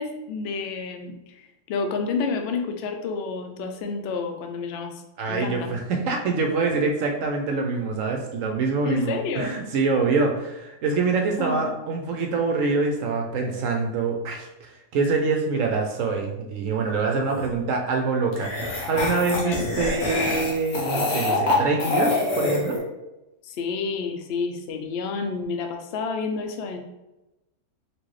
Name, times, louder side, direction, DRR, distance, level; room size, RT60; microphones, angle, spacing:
voice 1, 0.0-5.0 5.3-5.7 8.8-9.5 11.4-11.7 19.3-19.7 23.4-26.8, left 4 dB, 90° left, 5 dB, 0.5 m, -29 dB
voice 2, 5.2-22.8, right 4 dB, 70° right, 2 dB, 0.8 m, -25 dB
sound 1, 17.3-17.5 18.3-22.8, left 2 dB, 50° left, 1.0 m, -25 dB
4.0 x 2.5 x 3.1 m, 0.97 s
omnidirectional pair, 1.6 m